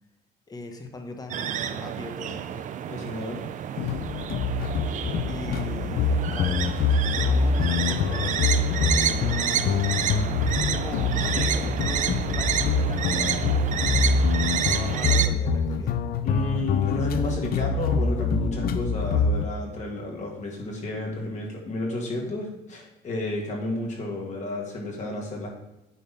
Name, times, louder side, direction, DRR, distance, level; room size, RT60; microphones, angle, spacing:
voice 1, 0.5-2.7 5.3-6.8 7.3-9.8 10.7-13.7 14.5-16.0, left 2 dB, 20° left, 5 dB, 1.0 m, -40 dB
sound 1, 1.3-15.3, right 9 dB, 50° right, 0.4 m, -29 dB
voice 2, 2.9-3.4 16.2-25.5, left 1 dB, 45° left, -1 dB, 2.1 m, -31 dB
sound 2, 3.8-19.5, left 5 dB, 60° left, 0.6 m, -25 dB
9.3 x 3.9 x 4.2 m, 0.94 s
cardioid pair, 110°, 17 cm